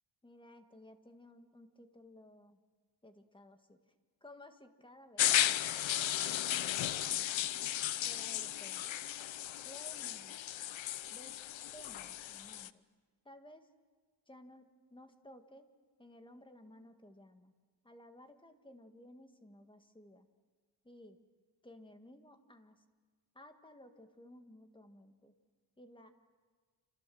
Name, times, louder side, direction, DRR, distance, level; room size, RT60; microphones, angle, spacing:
voice 1, 0.2-2.6 3.0-3.8 4.2-5.4 6.5-7.5 8.0-9.1 9.6-10.4 11.1-12.8 13.2-13.7 14.3-15.7 16.0-17.5 17.8-20.3 20.8-21.2 21.6-22.8 23.3-25.3 25.8-26.1, left 1 dB, 10° left, 7 dB, 1.8 m, -56 dB
sound 1, 5.2-12.7, left 12 dB, 90° left, 0.9 m, -35 dB
28.0 x 27.5 x 7.8 m, 1.5 s
wide cardioid pair, 155°, 45 cm